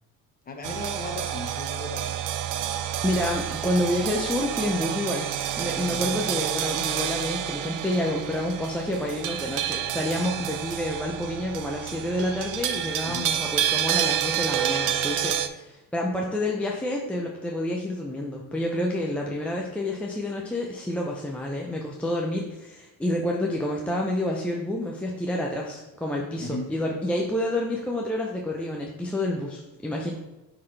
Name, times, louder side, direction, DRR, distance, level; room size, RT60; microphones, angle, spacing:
voice 1, 0.5-2.3 5.9-6.2 13.0-13.3 26.4-26.7, left 2 dB, 25° left, 3 dB, 1.0 m, -36 dB
sound 1, 0.6-15.5, right 10 dB, 55° right, 0.5 m, -29 dB
voice 2, 3.0-5.3 5.6-30.1, left 1 dB, 5° left, -2 dB, 0.5 m, -29 dB
9.8 x 4.0 x 3.2 m, 1.0 s
cardioid pair, 135°, 38 cm